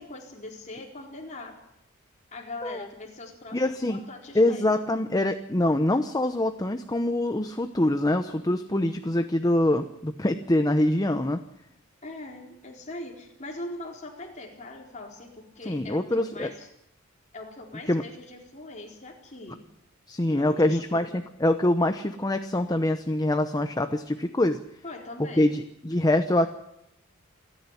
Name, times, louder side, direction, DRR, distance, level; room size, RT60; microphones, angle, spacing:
voice 1, 0.0-1.6 2.3-4.7 12.0-16.7 17.3-19.6 20.1-21.1 24.8-25.5, left 2 dB, 35° left, 0 dB, 4.4 m, -41 dB
voice 2, 3.5-4.0 4.3-11.4 15.7-16.5 17.9-18.0 20.1-24.6 25.4-26.5, left 1 dB, 20° left, 8 dB, 0.9 m, -24 dB
27.5 x 10.5 x 9.9 m, 0.81 s
head